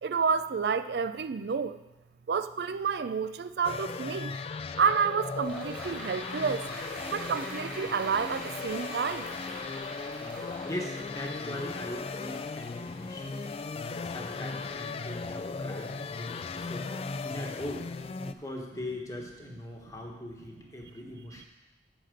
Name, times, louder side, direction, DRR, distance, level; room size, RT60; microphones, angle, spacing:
voice 1, 0.0-1.8 2.3-4.4 4.8-6.7 7.0-9.3 21.4-21.5, right 6 dB, 65° right, 12 dB, 0.4 m, -29 dB
sound 1, 3.6-18.3, left 4 dB, 35° left, 0.3 m, -37 dB
sound 2, 5.4-15.9 16.3-16.4, equal, 5° right, 2.0 m, -45 dB
voice 2, 10.7-17.9 18.2-21.5, left 1 dB, 20° left, 0 dB, 1.2 m, -41 dB
10.0 x 4.1 x 7.6 m, 1.0 s
head